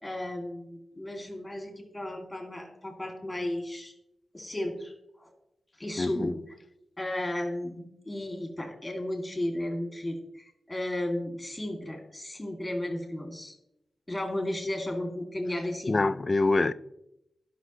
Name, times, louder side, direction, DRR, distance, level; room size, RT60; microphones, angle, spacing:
voice 1, 0.0-3.9 4.3-5.3 5.8-6.4 7.0-13.6 14.1-16.0, left 1 dB, 10° left, 2.5 m, -34 dB
voice 2, 6.0-6.3 15.9-16.7, left 3 dB, 30° left, 0.3 m, -25 dB
17.0 x 6.0 x 3.2 m
wide cardioid pair, 125°, 0 cm